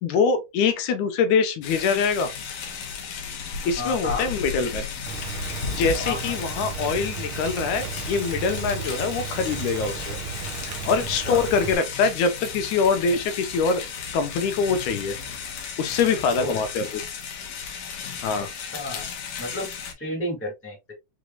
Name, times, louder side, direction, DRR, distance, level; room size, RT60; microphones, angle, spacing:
voice 1, 0.0-2.3 3.6-4.9 5.8-10.2 10.7-13.8 14.1-15.2 15.8-17.0 18.2-18.5, left 5 dB, 85° left, 2.2 m, -24 dB
sound 1, 1.6-19.9, left 6 dB, 70° left, 2.2 m, -34 dB
voice 2, 3.8-4.3 6.0-6.3 11.0-11.4 16.3-16.6 18.6-19.0 19.4-19.7 20.0-20.9, left 2 dB, 5° left, 1.3 m, -31 dB
Rain, 5.1-11.7, right 6 dB, 85° right, 1.1 m, -35 dB
6.2 x 3.1 x 2.3 m
omnidirectional pair, 3.4 m